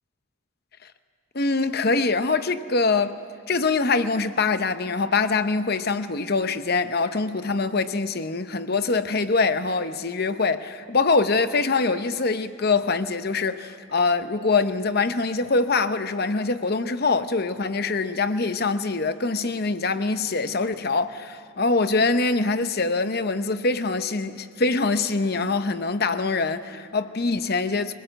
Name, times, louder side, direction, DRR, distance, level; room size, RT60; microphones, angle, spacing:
voice 1, 1.3-3.2 3.5-27.9, left 3 dB, 45° left, 0.8 m, -24 dB
23.0 x 20.5 x 7.7 m
head